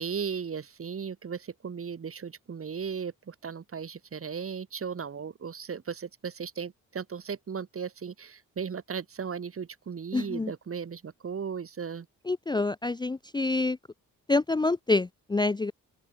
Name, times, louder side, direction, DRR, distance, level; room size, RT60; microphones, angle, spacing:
voice 1, 0.0-12.1, right 6 dB, 40° right, 1.7 m, -36 dB
voice 2, 10.1-10.5 12.3-13.8 14.3-15.7, left 3 dB, 15° left, 0.5 m, -27 dB
cardioid pair, 75°, 34 cm